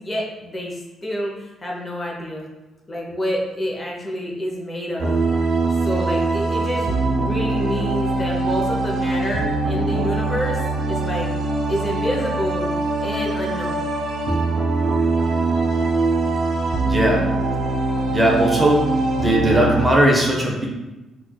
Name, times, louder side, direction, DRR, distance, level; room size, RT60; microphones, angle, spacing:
voice 1, 0.0-2.5 2.9-5.2 5.8-10.6 10.9-11.3 11.7-12.7 13.0-13.9, equal, 25° left, -2 dB, 0.6 m, -28 dB
sound 1, 5.0-19.9, right 2 dB, 70° right, 0.5 m, -22 dB
voice 2, 16.8-17.3 18.1-18.9 19.2-20.7, right 1 dB, 20° right, -2 dB, 0.6 m, -18 dB
4.3 x 2.3 x 2.2 m, 1.1 s
cardioid pair, 90°, 0 cm